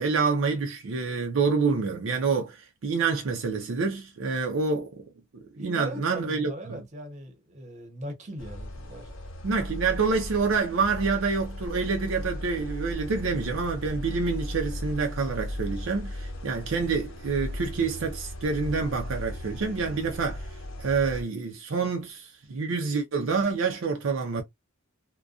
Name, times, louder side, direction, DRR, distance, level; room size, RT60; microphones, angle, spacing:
voice 1, 0.0-5.0 5.6-6.8 9.4-20.5 20.8-24.4, right 4 dB, 70° right, 0.5 m, -27 dB
voice 2, 5.6-9.1, equal, 35° right, 0.9 m, -40 dB
sound 1, 8.4-21.2, left 1 dB, 85° left, 0.7 m, -37 dB
2.3 x 2.2 x 2.4 m
head